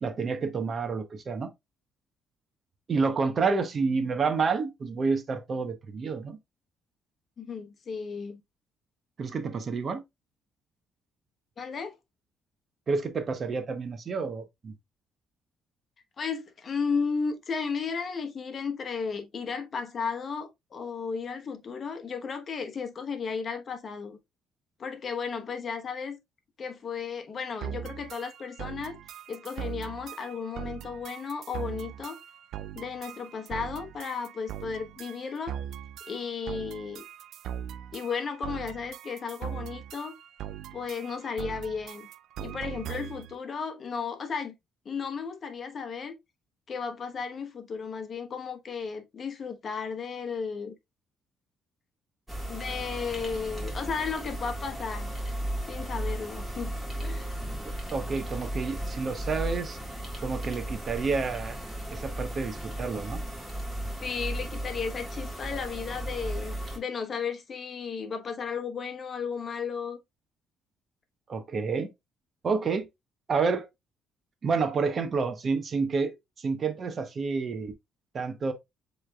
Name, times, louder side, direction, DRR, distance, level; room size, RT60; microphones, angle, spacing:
voice 1, 0.0-1.5 2.9-6.4 9.2-10.0 12.9-14.7 57.9-59.8 60.2-61.6 61.9-63.2 71.3-71.9 72.4-72.9 73.3-73.7 74.4-77.7 78.1-78.5, right 4 dB, 40° right, 0.8 m, -29 dB
voice 2, 7.4-8.4 11.6-12.0 16.2-24.2 24.8-26.2 26.6-29.0 29.3-32.2 32.7-35.6 36.1-37.0 37.9-40.2 40.7-42.1 42.4-44.5 44.8-46.1 46.7-50.7 52.5-55.1 55.6-57.3 64.0-70.0, left 5 dB, 40° left, 1.0 m, -34 dB
sound 1, 27.6-43.3, right 10 dB, 70° right, 0.3 m, -40 dB
sound 2, 52.3-66.8, right 1 dB, 5° right, 1.7 m, -35 dB
7.2 x 3.2 x 2.3 m
cardioid pair, 105°, 0 cm